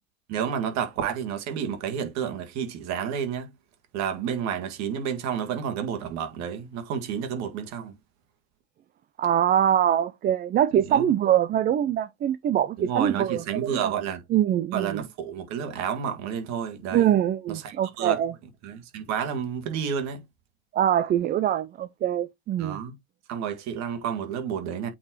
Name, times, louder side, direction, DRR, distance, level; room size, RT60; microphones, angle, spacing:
voice 1, 0.3-3.5 3.9-8.0 10.9-11.1 12.8-14.2 14.7-17.1 17.5-18.2 18.6-20.2 22.6-22.9 23.3-24.9, right 8 dB, 50° right, 1.9 m, -30 dB
voice 2, 9.2-13.9 14.3-15.0 16.9-18.3 20.7-22.8, right 10 dB, 25° right, 0.4 m, -23 dB
8.5 x 3.9 x 2.9 m
hypercardioid pair, 80°, 35 cm